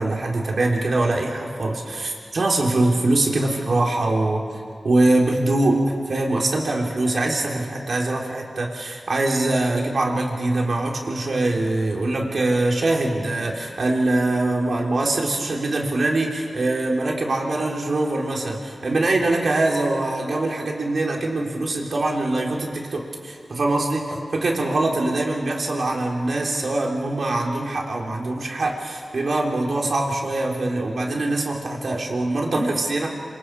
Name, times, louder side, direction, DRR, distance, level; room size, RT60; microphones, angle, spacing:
voice 1, 0.0-4.4 4.8-33.1, right 2 dB, 65° right, -1 dB, 4.0 m, -23 dB
27.0 x 26.5 x 5.0 m, 2.2 s
cardioid pair, 65°, 0 cm